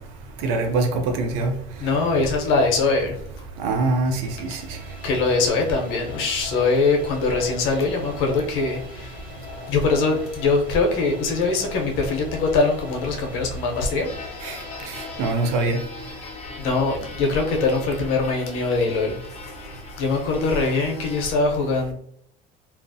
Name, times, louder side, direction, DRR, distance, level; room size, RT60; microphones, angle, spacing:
voice 1, 0.4-0.9 1.2-1.5 3.6-4.1 4.5-4.6 14.4-14.6 15.2-15.8, right 3 dB, 85° right, 5 dB, 0.6 m, -22 dB
voice 2, 1.8-3.2 5.0-9.2 9.7-14.1 16.6-19.2 20.0-21.9, left 3 dB, 80° left, 2 dB, 0.7 m, -22 dB
sound 1, 4.1-16.0, left 3 dB, 5° right, 1.0 m, -42 dB
sound 2, 14.0-21.4, left 4 dB, 30° left, 0.5 m, -40 dB
2.3 x 2.0 x 2.6 m, 0.65 s
cardioid pair, 125°, 21 cm